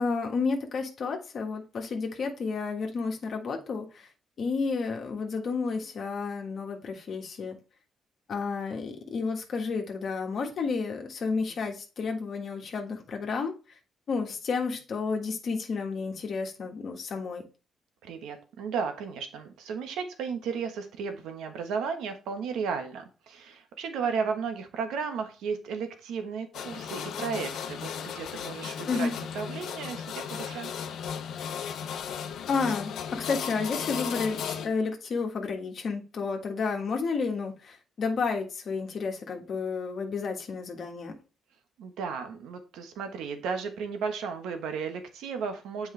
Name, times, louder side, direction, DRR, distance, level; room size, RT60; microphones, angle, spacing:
voice 1, 0.0-4.1 4.4-7.6 8.3-13.5 14.1-17.4 28.9-29.1 32.5-41.1, left 4 dB, 55° left, 1.5 m, -31 dB
voice 2, 18.0-30.7 41.8-45.9, right 6 dB, 85° right, 1.2 m, -34 dB
sound 1, 26.5-34.7, left 8 dB, 75° left, 0.9 m, -35 dB
8.0 x 4.8 x 3.3 m
cardioid pair, 90°, 0 cm